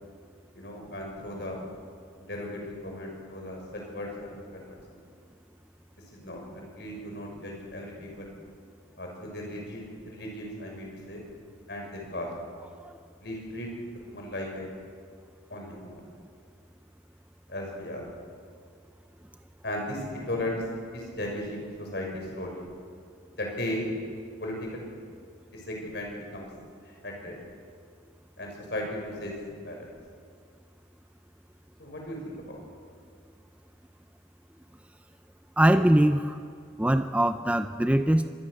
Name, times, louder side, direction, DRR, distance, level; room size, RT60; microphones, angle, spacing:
voice 1, 0.5-1.6 2.2-4.8 6.2-8.3 9.0-11.2 11.7-12.3 13.2-13.7 14.1-14.7 15.5-16.0 17.5-18.0 19.6-20.6 20.9-22.7 23.4-23.9 24.4-24.9 25.5-26.5 26.8-27.4 28.4-29.3 29.6-29.9 31.8-32.6, left 1 dB, 60° left, 0 dB, 6.1 m, -36 dB
voice 2, 35.6-36.4 36.8-38.4, right 1 dB, 5° right, 9 dB, 0.5 m, -22 dB
25.5 x 20.0 x 6.6 m, 2.2 s
head